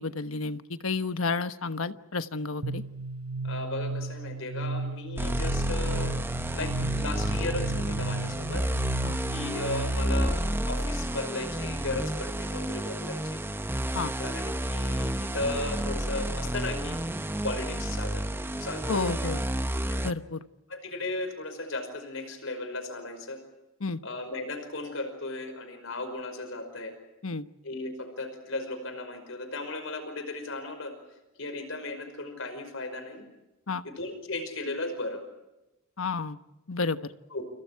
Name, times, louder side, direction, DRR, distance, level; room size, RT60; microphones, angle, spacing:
voice 1, 0.0-2.8 9.0-9.2 13.9-14.1 18.9-19.4 20.0-20.4 23.8-24.0 27.2-27.4 33.7-33.8 36.0-36.4 36.7-37.1, left 4 dB, 90° left, 10 dB, 1.3 m, -31 dB
sound 1, 2.6-10.2, right 3 dB, 80° right, 0.9 m, -34 dB
voice 2, 3.4-6.1 6.5-8.7 9.3-13.4 14.2-17.1 17.4-18.3 18.6-19.2 19.9-20.0 20.7-23.4 24.0-27.0 27.6-31.0 31.4-33.3 33.8-35.2 37.3-37.5, left 2 dB, 75° left, 9 dB, 5.4 m, -36 dB
sound 2, 5.2-20.1, right 1 dB, 10° right, 0.9 m, -30 dB
29.5 x 29.0 x 4.8 m, 0.98 s
head